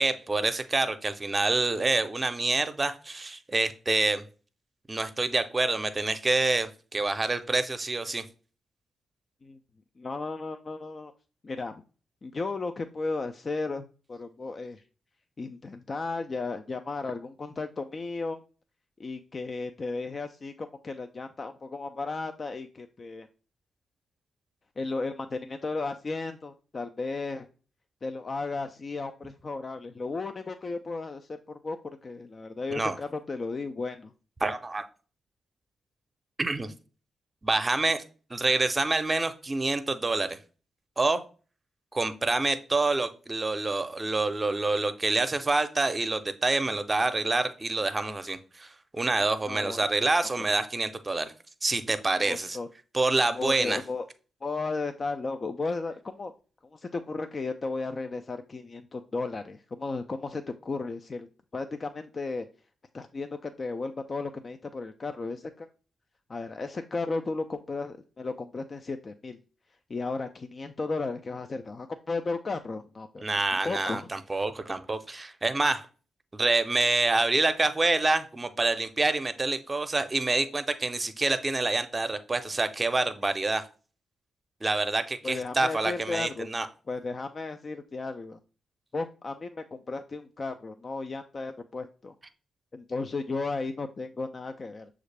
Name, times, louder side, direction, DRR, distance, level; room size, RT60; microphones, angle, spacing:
voice 1, 0.0-4.2 4.9-8.2 32.7-33.0 34.4-34.8 36.4-36.7 37.4-38.0 38.3-40.4 41.0-41.2 41.9-48.7 48.9-51.3 51.6-52.6 52.9-53.8 73.2-75.8 76.3-83.6 84.6-86.7, right 3 dB, 30° right, 10 dB, 0.6 m, -27 dB
voice 2, 10.0-11.1 11.4-11.8 12.2-14.8 15.4-18.4 19.0-23.3 24.8-27.5 28.0-34.1 49.5-50.1 52.2-52.7 53.3-54.0 54.4-56.3 56.7-61.3 61.5-62.4 62.9-65.7 66.3-69.4 69.9-73.2 73.5-74.1 85.2-86.5 86.9-88.4 88.9-92.1 92.7-94.9, left 3 dB, 45° left, 7 dB, 0.3 m, -34 dB
6.2 x 2.4 x 3.3 m, 0.37 s
hypercardioid pair, 40°, 0 cm